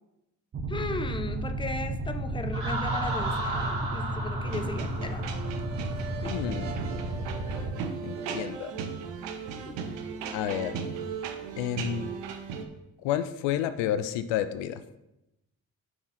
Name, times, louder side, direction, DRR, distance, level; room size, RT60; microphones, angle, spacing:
sound 1, 0.5-7.8, right 1 dB, 30° right, 0.8 m, -33 dB
voice 1, 0.7-5.3 6.2-6.5 8.2-8.5 9.7-9.9 10.2-10.5, left 3 dB, 10° left, 8 dB, 0.7 m, -37 dB
Laughter, 2.5-6.2, right 2 dB, 60° right, 2.3 m, -35 dB
sound 2, 4.5-12.7, right 6 dB, 80° right, 0.8 m, -36 dB
voice 2, 6.2-6.7 8.0-8.7 10.3-10.8 11.6-12.1 13.0-14.8, left 10 dB, 80° left, 12 dB, 0.5 m, -30 dB
7.6 x 4.0 x 5.6 m, 0.91 s
hypercardioid pair, 45°, 43 cm